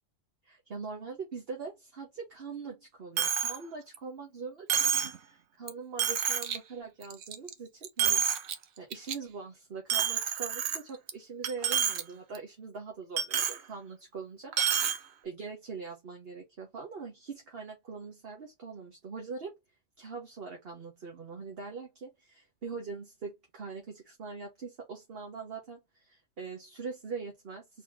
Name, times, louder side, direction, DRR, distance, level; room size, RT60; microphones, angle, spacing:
voice 1, 0.4-8.2 8.8-14.8 15.2-19.5 20.0-27.8, right 5 dB, 50° right, 1.3 m, -42 dB
Coin (dropping), 3.2-3.6 3.9-4.0 4.7-5.2 5.7-5.8 6.0-6.6 7.0-7.5 7.8-8.5 8.9-9.1 9.9-11.1 11.4-12.0 12.3-12.4 13.2-13.6 14.5-15.0, right 8 dB, 85° right, 1.1 m, -28 dB
4.1 x 2.9 x 3.5 m
omnidirectional pair, 1.3 m